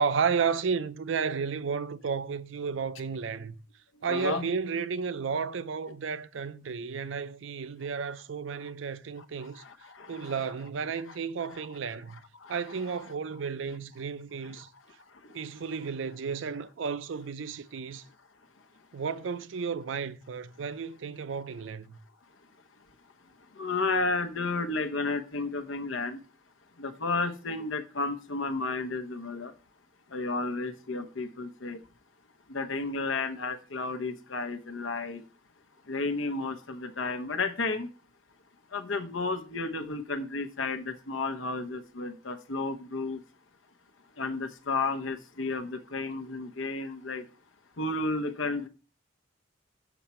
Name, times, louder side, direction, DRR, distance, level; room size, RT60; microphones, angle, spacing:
voice 1, 0.0-3.5 4.0-9.6 10.1-12.2 12.5-14.7 15.3-18.0 18.9-22.0, right 5 dB, 70° right, 0.5 m, -32 dB
voice 2, 4.1-4.5 9.4-10.3 12.4-12.5 15.3-15.4 23.5-26.2 26.8-29.5 30.1-31.8 32.5-35.2 35.9-37.9 38.7-43.2 44.2-47.2 47.8-48.7, left 3 dB, 80° left, 0.9 m, -32 dB
7.2 x 5.8 x 4.3 m
head